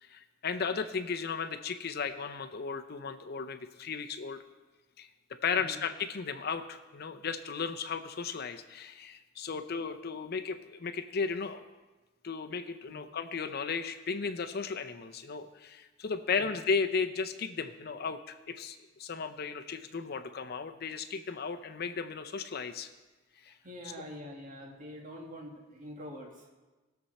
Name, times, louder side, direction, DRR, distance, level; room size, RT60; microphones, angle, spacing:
voice 1, 0.0-4.4 5.0-11.6 12.2-22.9 23.4-23.6, left 5 dB, 55° left, 9 dB, 0.6 m, -35 dB
voice 2, 5.5-5.8 12.9-13.0 16.3-16.5 23.5-26.5, equal, 40° right, -1 dB, 2.2 m, -45 dB
19.0 x 6.9 x 4.2 m, 1.2 s
head